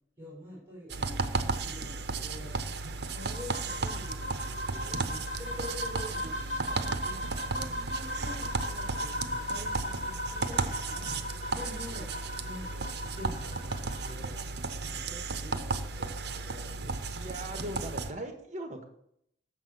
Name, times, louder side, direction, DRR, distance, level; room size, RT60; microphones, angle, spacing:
voice 1, 0.2-11.3 11.5-12.1 12.4-17.0, left 1 dB, 15° right, -8 dB, 4.0 m, -46 dB
sound 1, 0.9-18.1, right 3 dB, 65° right, 0.7 m, -34 dB
sound 2, 1.8-2.9 5.0-8.9 11.0-13.2, right 1 dB, 20° left, 2.4 m, -60 dB
sound 3, 3.2-14.1, left 1 dB, 45° left, 1.9 m, -38 dB
voice 2, 17.1-18.8, right 1 dB, 40° right, 6 dB, 1.3 m, -39 dB
6.6 x 6.0 x 7.1 m, 0.73 s
head